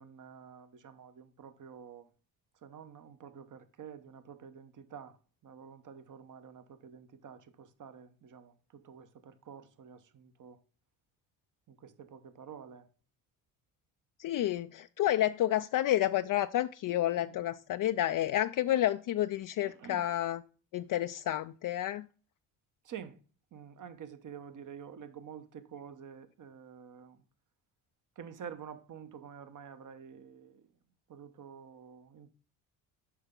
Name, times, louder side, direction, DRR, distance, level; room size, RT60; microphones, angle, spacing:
voice 1, 0.0-2.1 2.6-5.2 5.4-10.6 11.7-12.9 17.2-17.4 19.6-20.1 22.8-23.2 23.5-27.2 28.2-30.6 31.1-32.3, right 7 dB, 45° right, 1.1 m, -49 dB
voice 2, 14.2-20.4 20.7-22.0, left 13 dB, 45° left, 0.5 m, -30 dB
8.2 x 5.7 x 3.8 m
supercardioid pair, 70°, 45 cm